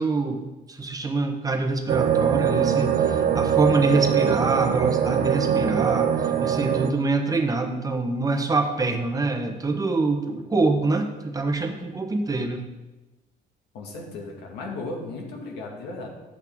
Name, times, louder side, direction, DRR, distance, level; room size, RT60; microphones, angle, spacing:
voice 1, 0.0-12.6, right 3 dB, 20° right, 5 dB, 1.0 m, -25 dB
sound 1, 1.9-6.9, right 8 dB, 50° right, 0.7 m, -22 dB
voice 2, 13.7-16.1, left 2 dB, 90° left, 0 dB, 2.1 m, -35 dB
10.5 x 8.5 x 3.6 m, 1.1 s
cardioid pair, 110°, 17 cm